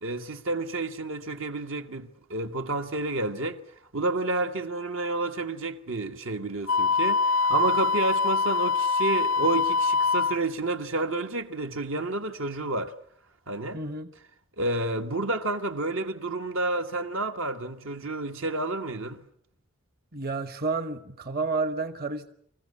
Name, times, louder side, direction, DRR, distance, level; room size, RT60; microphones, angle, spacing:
voice 1, 0.0-3.6 3.9-12.9 13.5-13.8 14.6-19.2, right 2 dB, 80° right, 1.5 m, -30 dB
Wind instrument woodwind instrument, 6.7-10.4, left 4 dB, 90° left, 0.9 m, -24 dB
voice 2, 13.7-14.1 20.1-22.3, right 3 dB, 50° right, 1.1 m, -30 dB
25.5 x 15.0 x 9.7 m
head